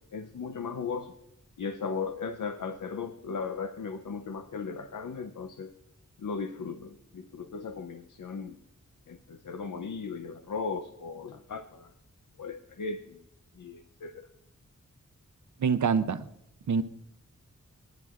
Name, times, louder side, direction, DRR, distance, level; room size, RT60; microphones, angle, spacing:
voice 1, 0.1-1.2 1.6-5.7 6.2-8.6 9.1-11.9 12.4-13.2 13.6-14.3, left 5 dB, 80° left, 8 dB, 0.7 m, -37 dB
voice 2, 15.6-16.3 16.7-16.8, right 6 dB, 70° right, 12 dB, 0.6 m, -25 dB
22.5 x 10.5 x 2.5 m, 0.80 s
wide cardioid pair, 85°, 31 cm